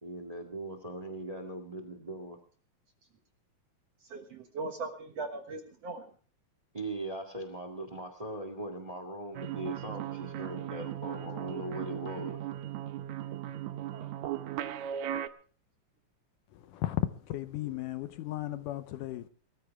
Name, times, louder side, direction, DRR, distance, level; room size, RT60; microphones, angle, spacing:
voice 1, 0.0-2.4 6.7-12.4, right 1 dB, 40° right, 0.5 m, -40 dB
voice 2, 4.0-6.0 13.9-14.1, right 3 dB, 55° right, 2.0 m, -39 dB
sound 1, 9.3-15.3, right 11 dB, 75° right, 1.7 m, -37 dB
voice 3, 16.7-17.0 17.3-19.3, left 15 dB, 75° left, 2.1 m, -35 dB
21.0 x 13.5 x 3.5 m
omnidirectional pair, 4.2 m